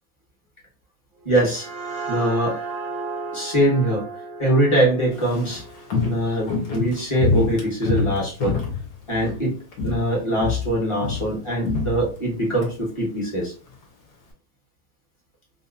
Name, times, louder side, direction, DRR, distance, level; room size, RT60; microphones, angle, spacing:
voice 1, 1.2-1.7 2.1-2.6 3.3-4.1 4.4-5.6 6.0-8.6 9.1-9.5 9.8-13.5, right 1 dB, 15° left, -4 dB, 1.2 m, -22 dB
sound 1, 1.2-6.7, right 3 dB, 55° right, 1.1 m, -34 dB
Walk footsteps, 5.1-9.4 9.7-10.1 10.4-12.7 13.0-13.1, left 4 dB, 60° left, 1.4 m, -26 dB
3.5 x 2.8 x 2.6 m, 0.38 s
omnidirectional pair, 2.2 m